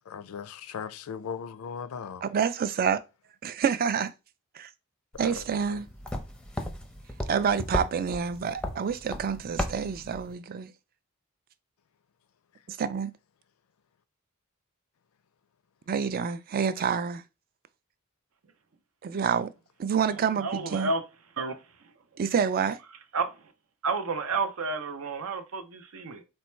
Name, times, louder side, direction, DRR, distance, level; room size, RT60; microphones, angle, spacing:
voice 1, 0.0-2.3 5.1-5.8, left 6 dB, 80° left, 0.4 m, -38 dB
voice 2, 2.2-3.0 3.4-4.1 4.6-4.7 5.2-5.9 7.3-10.7 12.7-13.1 15.9-17.2 19.0-19.5 19.8-20.9 22.2-22.8, right 7 dB, 45° right, 0.3 m, -28 dB
sound 1, 5.1-10.3, left 1 dB, 5° left, 0.6 m, -36 dB
voice 3, 20.4-21.0 21.4-21.6 23.1-23.4 23.8-26.2, right 4 dB, 75° right, 0.7 m, -30 dB
4.0 x 2.2 x 4.4 m
head